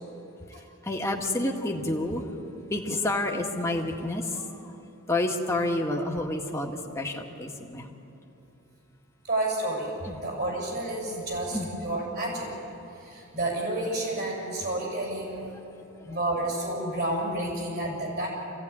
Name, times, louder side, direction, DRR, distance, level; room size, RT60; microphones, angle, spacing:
voice 1, 0.8-2.3 2.7-4.7 5.1-7.9 10.0-10.2 11.5-11.7 16.1-16.2, left 2 dB, 15° left, 0 dB, 1.9 m, -29 dB
voice 2, 9.2-12.5 12.9-15.6 16.0-18.3, right 1 dB, 50° right, -1 dB, 7.4 m, -30 dB
26.0 x 17.0 x 9.9 m, 2.9 s
head